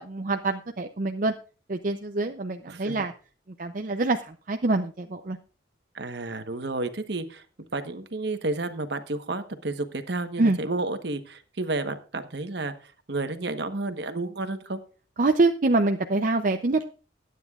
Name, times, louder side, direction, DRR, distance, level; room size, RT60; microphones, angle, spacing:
voice 1, 0.0-1.3 1.7-3.1 3.6-5.4 10.4-10.6 15.2-16.8, right 2 dB, 45° right, 6 dB, 0.5 m, -25 dB
voice 2, 2.7-3.0 5.9-7.4 7.7-14.8, right 2 dB, 60° right, 8 dB, 1.2 m, -31 dB
21.0 x 9.3 x 2.4 m, 0.38 s
head